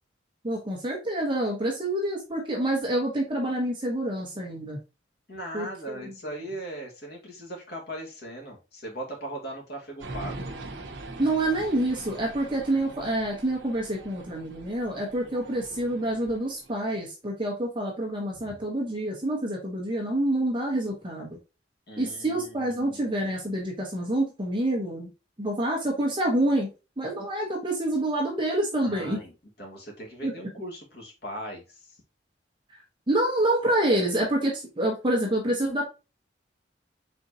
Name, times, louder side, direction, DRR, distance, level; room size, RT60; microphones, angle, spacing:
voice 1, 0.4-4.8 5.5-6.0 11.2-21.4 22.0-25.1 25.4-26.7 27.0-29.2 30.2-30.3 33.1-35.8, right 1 dB, 25° right, -1 dB, 0.9 m, -27 dB
voice 2, 5.3-10.5 15.2-15.4 18.4-18.6 21.9-23.2 28.8-29.3 29.6-31.9, right 1 dB, 60° left, 0 dB, 1.6 m, -39 dB
sound 1, 10.0-17.0, right 2 dB, 80° right, 0.8 m, -42 dB
4.3 x 3.8 x 2.7 m, 0.30 s
head